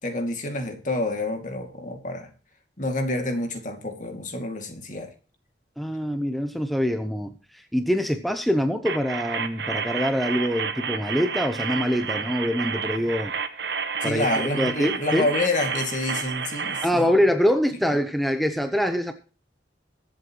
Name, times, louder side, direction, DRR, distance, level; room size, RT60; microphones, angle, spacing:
voice 1, 0.0-2.3 2.8-5.1 14.0-17.1, left 2 dB, 45° left, 5 dB, 2.4 m, -28 dB
voice 2, 5.8-13.3 14.0-14.3 14.6-15.3 16.8-19.1, equal, ahead, 7 dB, 0.8 m, -24 dB
sound 1, 8.9-16.9, right 6 dB, 65° right, 1.2 m, -30 dB
22.0 x 7.9 x 3.1 m, 0.37 s
head